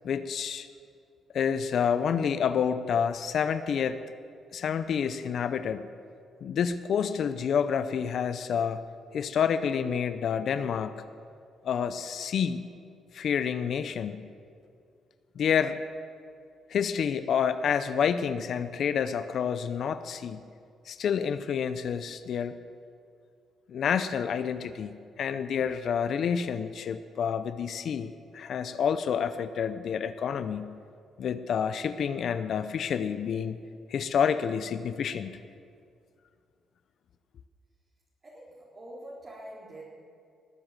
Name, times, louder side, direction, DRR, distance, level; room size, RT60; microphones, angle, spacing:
voice 1, 0.0-0.7 1.3-4.0 4.5-5.9 6.4-8.8 9.1-11.0 11.6-12.6 13.1-14.3 15.4-15.8 16.7-20.4 20.9-22.6 23.7-30.8 31.2-33.6 33.9-35.3, left 7 dB, 65° left, 12 dB, 0.7 m, -28 dB
voice 2, 38.2-39.8, right 1 dB, 35° right, -7 dB, 3.7 m, -45 dB
19.5 x 8.0 x 7.5 m, 2.3 s
cardioid pair, 90°, 0 cm